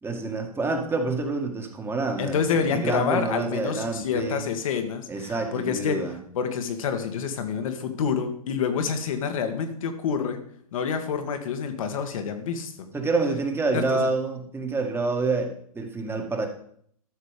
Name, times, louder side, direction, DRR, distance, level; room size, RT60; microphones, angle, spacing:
voice 1, 0.0-4.4 5.1-6.2 12.9-16.5, right 3 dB, 10° right, 4 dB, 1.9 m, -27 dB
voice 2, 2.2-6.1 6.3-10.4 10.7-12.9 13.7-14.1, left 6 dB, 65° left, 7 dB, 1.8 m, -28 dB
13.0 x 6.7 x 5.2 m, 0.64 s
hypercardioid pair, 110°, 19 cm